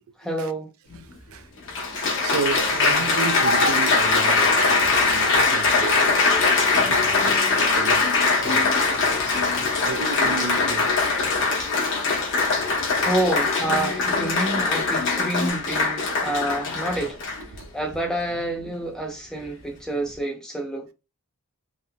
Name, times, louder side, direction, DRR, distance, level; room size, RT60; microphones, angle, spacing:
voice 1, 0.2-0.7 13.0-17.2 17.7-20.9, right 1 dB, 5° left, 0.7 m, -28 dB
Applause, 0.9-1.0 1.7-17.6 18.3-18.7, left 3 dB, 60° left, 0.9 m, -22 dB
voice 2, 1.9-6.2 6.8-11.0 16.3-16.4 17.5-17.7, right 5 dB, 65° right, 0.4 m, -33 dB
sound 1, 5.9-15.5, left 4 dB, 35° left, 0.3 m, -36 dB
3.4 x 2.6 x 2.2 m
head